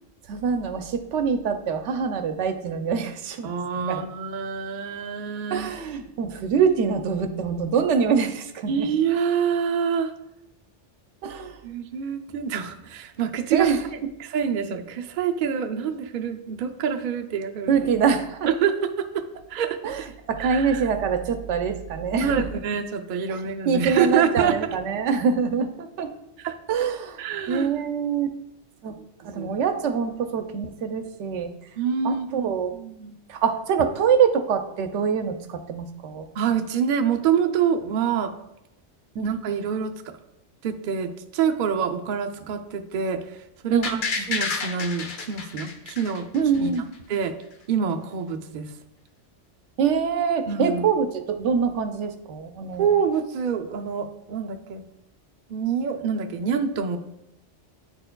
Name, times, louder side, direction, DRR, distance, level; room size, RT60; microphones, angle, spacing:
voice 1, 0.3-3.5 3.8-4.0 5.5-8.9 11.2-11.5 13.5-13.8 17.7-18.5 19.8-22.5 23.3-23.4 23.7-26.1 26.7-27.2 27.5-28.3 28.8-29.0 29.2-31.5 32.0-32.7 33.3-36.3 39.2-39.3 43.7-44.3 46.3-46.9 49.8-52.9, right 6 dB, 85° right, 7 dB, 0.9 m, -24 dB
voice 2, 3.4-5.7 8.7-10.1 11.6-13.8 14.2-17.9 18.5-19.2 19.5-19.8 20.4-20.8 22.2-24.6 26.4-26.6 27.2-27.7 29.3-29.6 31.8-33.2 36.4-38.3 39.2-39.9 40.6-43.2 43.6-46.3 46.6-46.7 47.1-47.3 47.7-48.7 50.5-50.9 52.8-54.8 55.5-57.0, right 7 dB, 60° right, 4 dB, 0.6 m, -26 dB
sound 1, 43.8-46.8 47.1-47.2, left 4 dB, 55° left, 0.7 m, -30 dB
9.5 x 4.4 x 2.2 m, 0.82 s
omnidirectional pair, 1.2 m